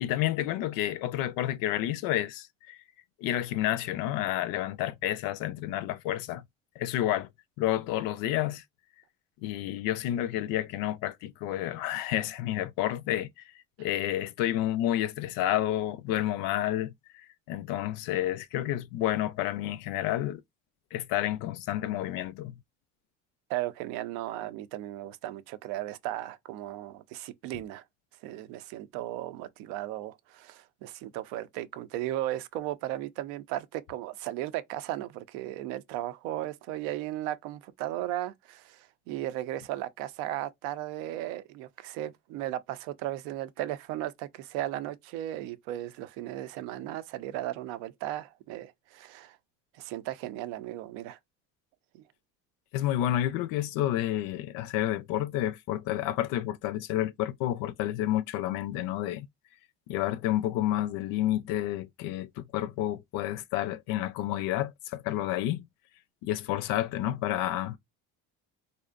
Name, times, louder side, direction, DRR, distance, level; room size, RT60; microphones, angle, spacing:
voice 1, 0.0-2.8 3.2-6.4 6.8-7.3 7.6-8.6 9.4-13.3 13.8-16.9 17.5-20.4 20.9-22.5 52.7-59.3 59.9-65.7 66.2-67.8, left 13 dB, 70° left, 0.5 m, -30 dB
voice 2, 23.5-27.8 28.2-49.4 49.7-51.2 51.9-52.0, right 14 dB, 80° right, 0.5 m, -36 dB
2.5 x 2.1 x 2.4 m
supercardioid pair, 110°, 34 cm